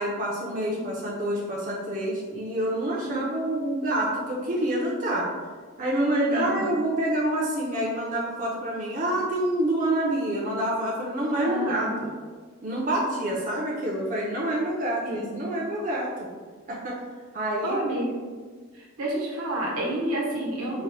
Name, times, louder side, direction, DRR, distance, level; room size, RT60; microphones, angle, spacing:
voice 1, 0.0-5.3 5.8-11.8 12.6-16.3 16.7-17.0 17.3-17.8, right 1 dB, 35° right, -4 dB, 0.4 m, -27 dB
voice 2, 11.4-12.0 15.0-15.4 17.6-18.1 18.7-20.8, right 1 dB, 85° right, -3 dB, 0.9 m, -29 dB
4.0 x 2.0 x 2.6 m, 1.5 s
head